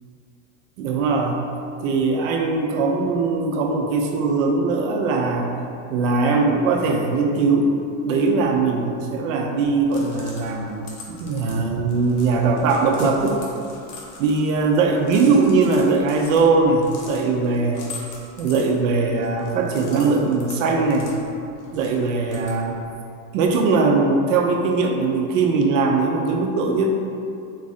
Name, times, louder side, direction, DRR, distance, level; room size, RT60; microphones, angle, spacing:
voice 1, 0.8-1.4 1.8-5.5 5.9-7.7 8.0-13.4 14.2-17.9 18.4-21.2 21.7-22.8 23.3-26.9, right 3 dB, 85° right, 2 dB, 0.7 m, -20 dB
sound 1, 9.8-22.9, left 3 dB, 75° left, 1.0 m, -43 dB
3.9 x 2.5 x 4.0 m, 2.5 s
cardioid pair, 175°, 38 cm